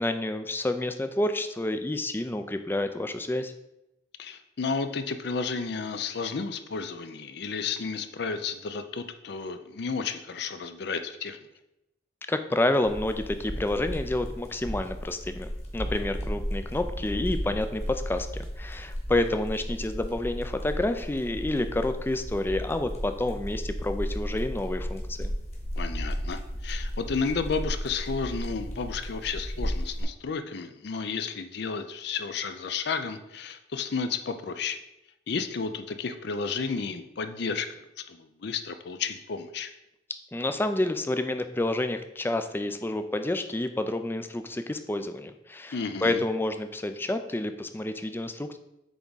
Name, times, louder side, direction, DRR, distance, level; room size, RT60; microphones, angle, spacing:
voice 1, 0.0-3.5 12.3-25.3 40.3-48.6, left 1 dB, 10° left, 9 dB, 0.4 m, -29 dB
voice 2, 4.2-11.4 25.8-34.8 35.3-39.7 45.7-46.2, left 5 dB, 65° left, 10 dB, 0.5 m, -32 dB
sound 1, 12.9-30.0, equal, 35° left, 1.6 m, -34 dB
8.2 x 3.6 x 4.0 m, 0.90 s
head